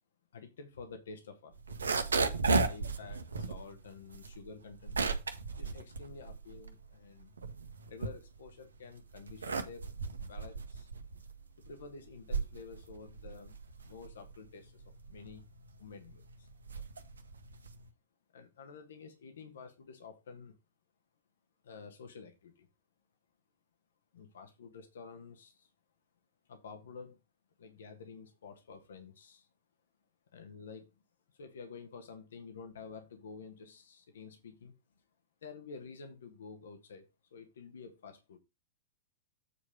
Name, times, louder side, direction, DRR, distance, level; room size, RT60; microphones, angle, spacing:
voice 1, 0.3-2.0 2.4-5.0 5.6-7.3 7.9-9.9 10.3-10.9 11.6-13.6 13.9-15.5 15.8-16.8 18.3-20.6 21.6-22.7 24.1-25.7 26.5-27.2 27.6-29.5 30.3-30.9 31.3-34.7 35.4-38.4, left 5 dB, 65° left, 1.6 m, -50 dB
sound 1, 1.5-6.9 7.2-8.7 9.1-17.9, right 3 dB, 75° right, 1.2 m, -35 dB
8.5 x 4.8 x 5.1 m
figure-of-eight pair, 100°, 0 cm